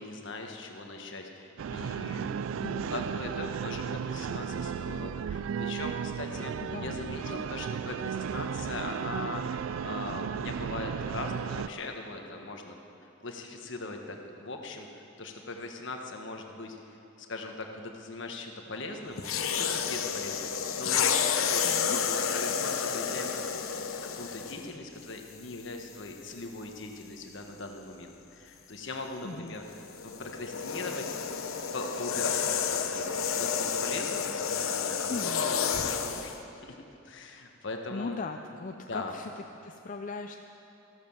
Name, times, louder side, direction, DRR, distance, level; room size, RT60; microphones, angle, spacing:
voice 1, 0.0-19.2 19.5-23.4 24.0-31.1 31.7-32.4 32.7-33.0 33.4-36.8 37.0-38.2 38.9-39.2, left 2 dB, 60° left, 3 dB, 1.4 m, -40 dB
sound 1, 1.6-11.7, right 7 dB, 75° right, 0.3 m, -34 dB
voice 2, 2.6-2.9 6.6-7.5 21.6-22.0 29.2-29.6 35.1-35.4 37.9-39.3 39.6-40.4, left 4 dB, 40° left, 5 dB, 0.5 m, -39 dB
Boa Constrictor, 19.2-24.7 25.5-25.7 29.7-36.4, left 7 dB, 90° left, 0.9 m, -30 dB
14.5 x 12.0 x 7.2 m, 3.0 s
head